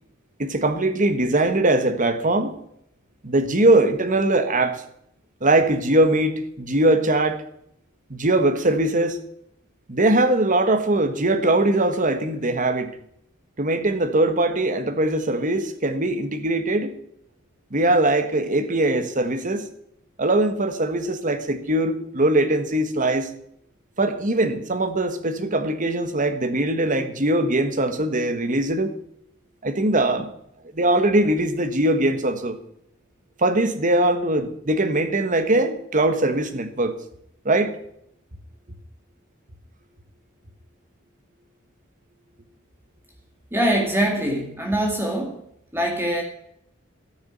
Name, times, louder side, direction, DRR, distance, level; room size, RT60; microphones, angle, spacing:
voice 1, 0.4-2.6 3.2-4.8 5.4-7.4 8.1-9.2 9.9-12.9 13.6-16.9 17.7-19.7 20.2-23.3 24.0-28.9 29.6-30.3 30.7-32.6 33.4-37.0 37.4-37.8, right 1 dB, 40° right, 1.5 m, -21 dB
voice 2, 43.5-45.4 45.7-46.2, right 1 dB, 10° right, 2.1 m, -23 dB
13.0 x 7.0 x 9.4 m
head